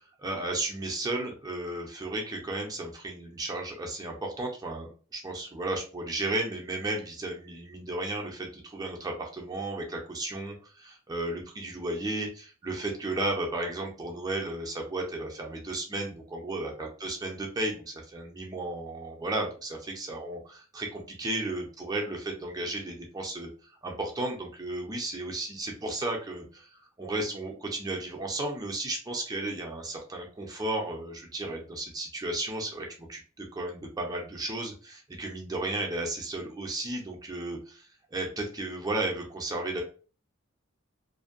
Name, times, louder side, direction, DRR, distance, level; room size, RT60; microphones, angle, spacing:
voice 1, 0.2-23.5 23.8-39.8, right 2 dB, 20° right, 0 dB, 0.5 m, -34 dB
2.5 x 2.1 x 2.5 m, 0.37 s
head